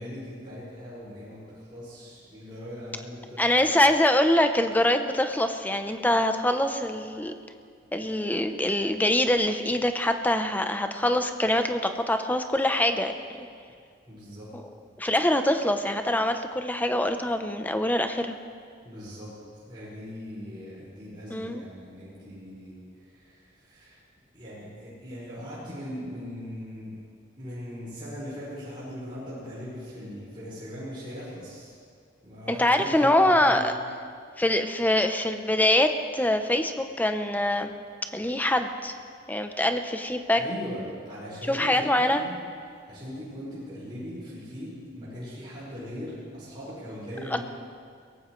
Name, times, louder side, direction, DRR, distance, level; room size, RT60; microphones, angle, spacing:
voice 1, 0.0-3.7 14.1-14.5 18.8-24.0 24.3-27.0 27.4-31.8 32.2-33.7 40.4-42.4 42.9-47.4, equal, 25° right, -10 dB, 5.3 m, -40 dB
voice 2, 3.4-7.3 7.9-13.1 13.4-13.5 15.0-18.4 21.3-21.6 32.5-33.7 34.4-37.7 38.1-38.9 39.3-40.4 41.5-42.2 47.3-47.4, left 1 dB, 10° left, 7 dB, 0.7 m, -24 dB
22.5 x 17.5 x 3.2 m, 2.2 s
head